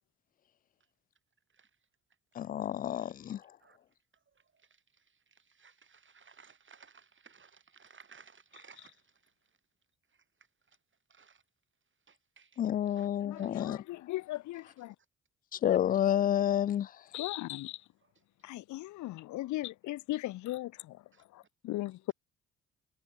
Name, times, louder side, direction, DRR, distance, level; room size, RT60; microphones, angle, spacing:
voice 1, 2.4-3.4 12.6-13.8 15.5-16.9, left 11 dB, 30° left, 0.3 m, -29 dB
voice 2, 3.0-3.3 3.6-3.8 4.1-9.6 10.1-10.2 10.7-10.8 11.1-11.4 12.1-13.1 13.4-13.6 14.5-14.7 18.0-18.2 21.1-21.2, right 5 dB, 40° right, 6.8 m, -59 dB
voice 3, 13.9-14.9 17.1-17.8 18.4-21.0 21.3-22.1, left 16 dB, 65° left, 1.6 m, -37 dB
hypercardioid pair, 50°, 31 cm